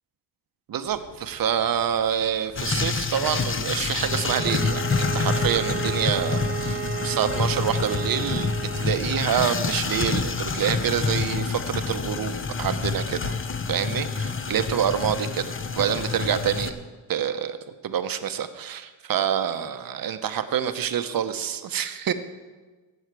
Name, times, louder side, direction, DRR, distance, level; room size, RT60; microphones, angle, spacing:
voice 1, 0.7-13.4 13.7-15.5 15.8-16.7 17.1-17.6 17.8-22.1, right 9 dB, 50° right, 10 dB, 1.0 m, -27 dB
sound 1, 0.8-15.8, equal, 80° left, 3.6 m, -51 dB
sound 2, 2.6-16.7, left 5 dB, 25° left, 0.8 m, -27 dB
Bowed string instrument, 4.0-8.9, right 8 dB, 25° right, 0.5 m, -33 dB
16.0 x 6.4 x 4.8 m, 1.3 s
cardioid pair, 80°, 47 cm